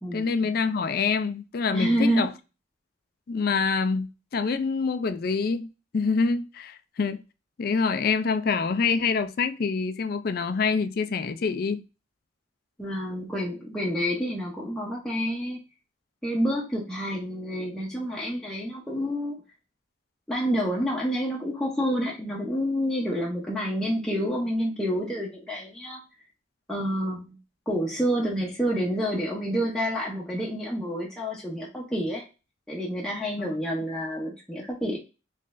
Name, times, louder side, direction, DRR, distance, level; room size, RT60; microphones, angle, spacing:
voice 1, 0.1-2.3 3.3-7.2 7.6-11.8 33.4-33.5, left 5 dB, 50° left, 0.4 m, -26 dB
voice 2, 1.7-2.3 12.8-15.6 16.2-19.4 20.3-26.0 26.7-27.4 27.7-32.2 32.7-35.0, equal, 5° left, 0.7 m, -28 dB
3.7 x 3.2 x 2.5 m
head